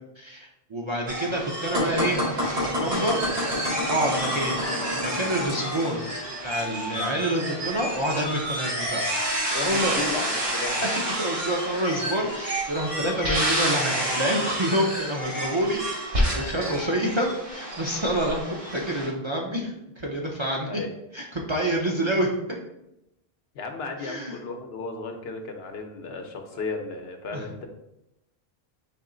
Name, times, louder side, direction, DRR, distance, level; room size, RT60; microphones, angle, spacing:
voice 1, 0.2-2.2 2.6-3.3 3.9-6.1 6.4-9.1 9.6-10.0 11.2-15.8 16.1-20.8 21.1-22.3 24.0-24.4 27.3-27.5, right 1 dB, 40° right, -1 dB, 0.5 m, -27 dB
sound 1, 1.1-19.1, right 1 dB, 65° right, 1.5 m, -30 dB
sound 2, 1.7-5.9, left 1 dB, 85° right, 2.2 m, -29 dB
voice 2, 9.5-10.8 20.7-20.9 23.5-27.7, left 3 dB, 75° left, 4 dB, 0.9 m, -34 dB
4.3 x 3.1 x 3.7 m, 0.87 s
omnidirectional pair, 1.1 m